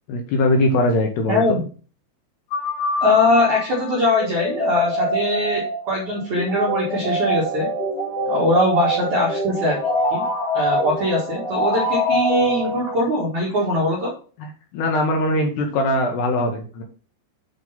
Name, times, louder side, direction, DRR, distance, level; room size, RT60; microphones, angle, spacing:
voice 1, 0.1-1.4 14.4-16.8, left 1 dB, 75° left, 2 dB, 2.6 m, -21 dB
voice 2, 1.3-1.6 3.0-7.7 8.3-9.8 10.1-10.2 10.5-14.1, left 1 dB, 65° right, -4 dB, 1.8 m, -21 dB
sound 1, 2.5-13.2, equal, 55° left, 3.7 m, -24 dB
8.0 x 3.8 x 5.4 m, 0.38 s
omnidirectional pair, 5.9 m